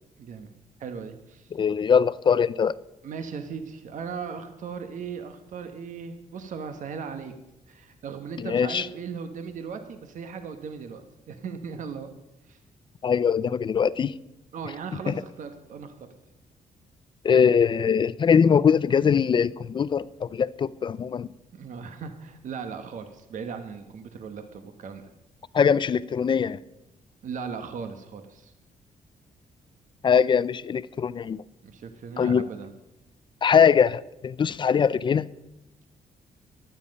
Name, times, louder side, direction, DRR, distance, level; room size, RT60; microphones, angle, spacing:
voice 1, 0.2-0.5 0.8-1.5 3.0-7.3 7.7-12.1 12.5-12.6 14.5-15.9 21.5-25.0 27.2-28.5 31.6-32.7, right 6 dB, 60° right, 1.2 m, -37 dB
voice 2, 1.5-2.8 8.4-8.9 13.0-14.1 15.1-15.2 17.2-21.3 25.5-26.6 30.0-31.4 32.2-32.5 33.4-35.3, left 7 dB, 35° left, 0.4 m, -22 dB
15.5 x 12.0 x 5.3 m
cardioid pair, 155°, 15 cm